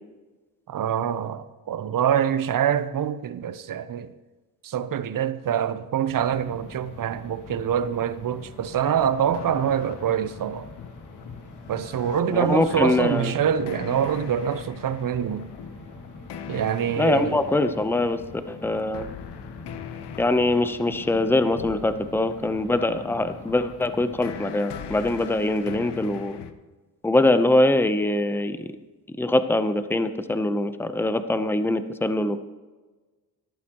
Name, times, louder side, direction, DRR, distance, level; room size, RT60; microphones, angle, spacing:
voice 1, 0.7-4.1 4.6-10.7 11.7-15.5 16.5-17.4, right 9 dB, 50° right, 0.8 m, -25 dB
sound 1, 6.1-24.5, left 3 dB, 45° left, 2.2 m, -44 dB
sound 2, 8.4-18.2 18.9-26.5, left 8 dB, 75° left, 0.9 m, -42 dB
voice 2, 12.3-13.3 17.0-18.2 18.5-19.0 20.2-26.4 27.0-28.7 29.2-32.4, left 2 dB, 5° left, 0.7 m, -23 dB
13.0 x 11.5 x 3.0 m
cardioid pair, 65°, 41 cm